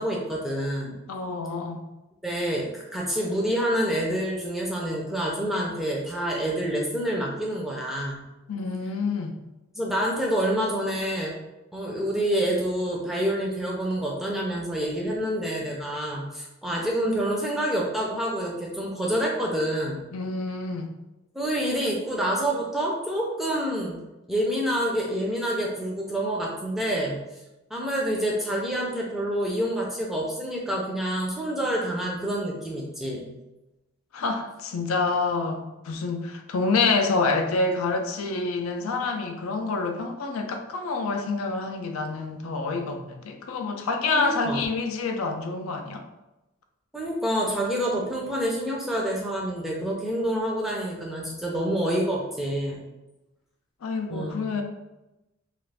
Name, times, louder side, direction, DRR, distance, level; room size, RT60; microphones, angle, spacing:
voice 1, 0.0-1.0 2.2-8.3 9.7-11.4 11.7-20.1 21.3-24.0 24.3-27.2 27.7-33.3 44.1-44.6 46.9-52.8 54.1-54.6, right 1 dB, ahead, -3 dB, 0.4 m, -27 dB
voice 2, 1.1-1.9 8.5-9.4 20.1-20.9 34.1-46.0 53.8-54.6, left 3 dB, 85° left, 4 dB, 0.4 m, -27 dB
2.4 x 2.4 x 3.3 m, 0.99 s
head